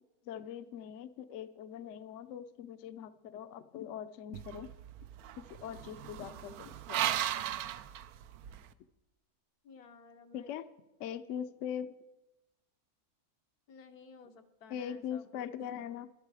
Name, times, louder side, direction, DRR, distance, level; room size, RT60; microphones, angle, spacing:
voice 1, 0.2-4.7 5.4-7.0 10.3-10.7 11.0-12.0 14.7-16.1, left 9 dB, 65° left, 12 dB, 0.8 m, -41 dB
sound 1, 4.3-8.7, right 12 dB, 80° right, 1.1 m, -37 dB
voice 2, 9.6-10.5 13.7-15.5 15.8-16.0, left 5 dB, 85° left, 7 dB, 1.5 m, -55 dB
13.0 x 12.0 x 4.8 m, 0.99 s
omnidirectional pair, 1.5 m